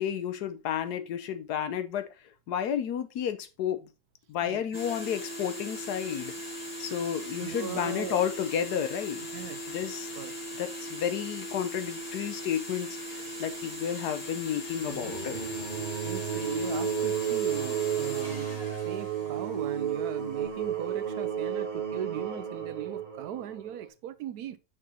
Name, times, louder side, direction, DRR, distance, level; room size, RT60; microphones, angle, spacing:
voice 1, 0.0-2.0 2.5-3.8 4.3-6.3 6.8-9.2 9.7-10.1 10.6-15.4, left 9 dB, 75° left, 1.3 m, -31 dB
voice 2, 4.4-5.1 7.4-8.2 9.3-9.9 10.1-10.3 16.0-18.5 18.9-24.6, right 10 dB, 75° right, 1.1 m, -39 dB
sound 1, 4.7-19.9, equal, 35° left, 2.5 m, -39 dB
sound 2, 14.8-23.9, right 8 dB, 35° right, 0.9 m, -32 dB
6.1 x 5.9 x 2.9 m
omnidirectional pair, 1.7 m